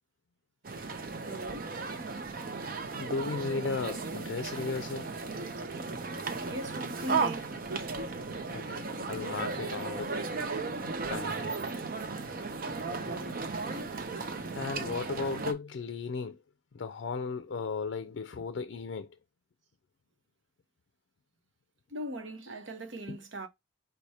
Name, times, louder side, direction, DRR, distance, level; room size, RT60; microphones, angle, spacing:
sound 1, 0.6-15.5, right 4 dB, 50° right, 0.6 m, -35 dB
voice 1, 1.3-1.8 6.4-7.6 13.0-13.7 21.9-23.5, equal, 75° right, 0.8 m, -40 dB
voice 2, 3.0-5.1 8.5-10.2 11.1-11.7 14.5-16.4 16.7-19.2 23.1-23.2, left 4 dB, 65° left, 0.4 m, -35 dB
4.8 x 2.2 x 4.1 m
head